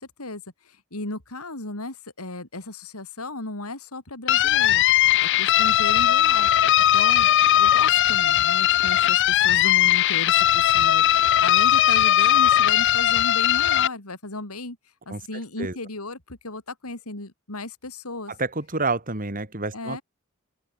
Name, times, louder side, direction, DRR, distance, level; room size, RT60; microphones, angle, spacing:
voice 1, 0.0-4.8 5.2-6.5 6.9-7.3 7.6-14.8 15.1-18.3 19.7-20.0, left 2 dB, 85° left, 3.9 m, -35 dB
sound 1, 4.3-13.9, left 12 dB, 55° left, 0.5 m, -19 dB
voice 2, 18.4-20.0, right 3 dB, 40° right, 3.6 m, -28 dB
open air
head